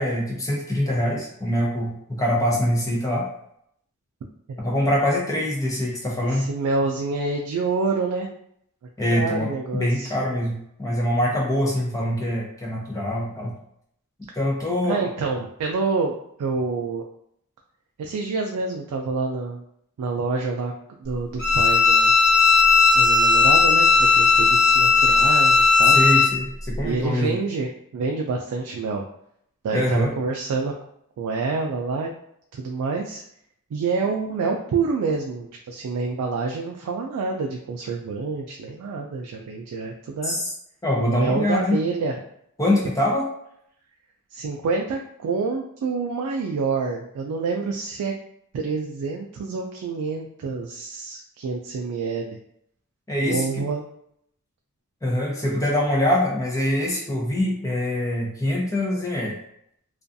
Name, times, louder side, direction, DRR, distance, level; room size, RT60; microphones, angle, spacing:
voice 1, 0.0-3.3 4.6-6.5 9.0-13.5 14.3-15.0 25.9-27.3 29.7-30.1 40.2-40.5 40.8-41.8 42.6-43.3 53.1-53.6 55.0-59.3, left 1 dB, 15° left, -3 dB, 0.5 m, -24 dB
voice 2, 6.2-8.3 9.1-10.1 14.8-17.0 18.0-19.6 20.0-20.7 21.0-22.1 22.9-26.0 26.8-29.1 29.6-30.7 31.2-32.1 32.5-33.2 33.7-40.4 41.0-42.2 44.3-48.1 48.5-52.4 53.2-53.8, right 4 dB, 90° right, 1 dB, 0.3 m, -27 dB
Bowed string instrument, 21.4-26.3, left 4 dB, 60° left, 0.8 m, -16 dB
2.4 x 2.3 x 2.5 m, 0.72 s
head